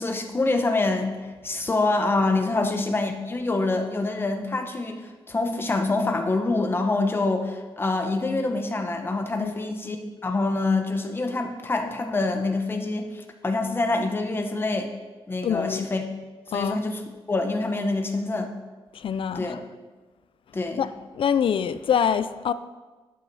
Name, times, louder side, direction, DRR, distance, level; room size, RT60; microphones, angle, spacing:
voice 1, 0.0-10.0 10.2-14.9 15.3-16.0 16.5-17.0 17.3-18.5 19.3-19.6 20.5-20.9, left 2 dB, 20° left, 0.9 m, -26 dB
voice 2, 9.4-9.7 15.4-15.9 16.5-16.8 18.9-19.6 20.8-20.9 21.1-22.5, left 8 dB, 60° left, 0.4 m, -25 dB
12.0 x 8.4 x 4.1 m
wide cardioid pair, 170°, 10 cm